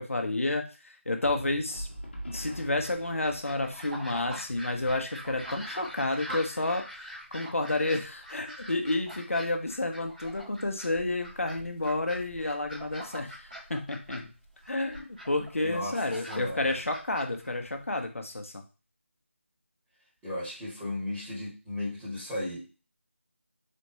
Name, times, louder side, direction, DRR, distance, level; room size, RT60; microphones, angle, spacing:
voice 1, 0.0-1.9 2.3-14.3 14.7-18.6, left 2 dB, 85° left, 5 dB, 0.8 m, -30 dB
sound 1, 1.2-4.7, equal, 55° left, 1.2 m, -43 dB
sound 2, 2.8-18.0, equal, 45° right, 1.8 m, -44 dB
voice 2, 15.6-16.7 20.2-22.6, left 1 dB, 5° right, -11 dB, 1.5 m, -35 dB
4.3 x 3.1 x 2.7 m, 0.33 s
figure-of-eight pair, 170°, 7 cm